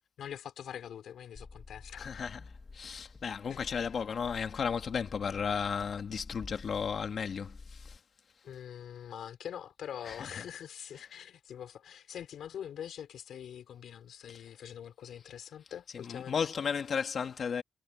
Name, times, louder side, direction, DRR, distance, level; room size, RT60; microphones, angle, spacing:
voice 1, 0.2-2.3 3.5-3.9 8.4-16.4, left 9 dB, 85° left, 4.8 m, -44 dB
Car / Engine, 1.4-8.0, left 3 dB, 40° left, 1.9 m, -50 dB
voice 2, 2.0-2.4 2.7-8.0 10.1-10.2 16.0-17.6, left 6 dB, 65° left, 2.3 m, -34 dB
cardioid pair, 70°, 0 cm